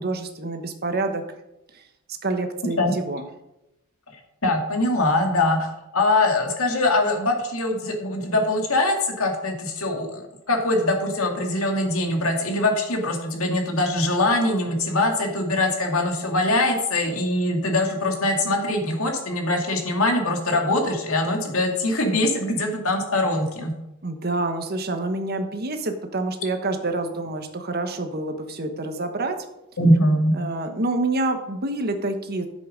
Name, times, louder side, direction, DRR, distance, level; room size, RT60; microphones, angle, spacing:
voice 1, 0.0-1.2 1.7-1.8 2.2-3.2 24.0-29.3 30.3-32.5, right 2 dB, 45° right, 6 dB, 1.2 m, -27 dB
voice 2, 4.4-5.6 5.9-23.7 29.8-30.3, left 2 dB, 70° left, 2 dB, 2.2 m, -22 dB
10.0 x 7.8 x 5.1 m, 0.89 s
head